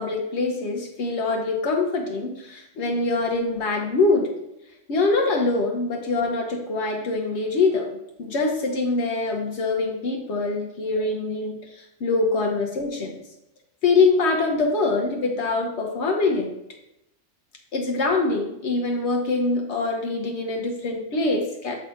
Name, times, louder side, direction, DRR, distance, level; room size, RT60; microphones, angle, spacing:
voice 1, 0.0-4.3 4.9-13.2 13.8-16.5 17.7-21.7, left 3 dB, 70° left, 0 dB, 1.1 m, -24 dB
6.4 x 3.3 x 5.1 m, 0.85 s
omnidirectional pair, 1.2 m